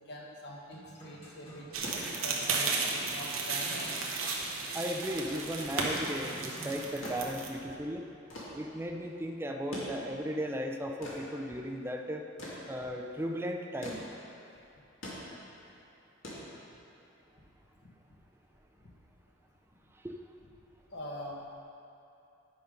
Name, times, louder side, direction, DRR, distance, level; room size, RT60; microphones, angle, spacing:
voice 1, 0.0-1.7 2.2-3.9 20.9-21.4, left 1 dB, 55° left, -2 dB, 1.3 m, -44 dB
sound 1, 0.7-1.7 2.0-2.2 3.2-4.3 5.8-6.8, equal, 30° left, 1.8 m, -45 dB
sound 2, 1.7-7.5, right 4 dB, 85° right, 1.0 m, -34 dB
sound 3, 1.8-17.1 18.3-18.4, left 1 dB, 80° left, 2.0 m, -46 dB
voice 2, 4.7-8.1 8.5-12.3 12.7-14.1 20.0-20.2, equal, 10° right, 2 dB, 0.4 m, -36 dB
9.4 x 5.2 x 5.3 m, 2.7 s
head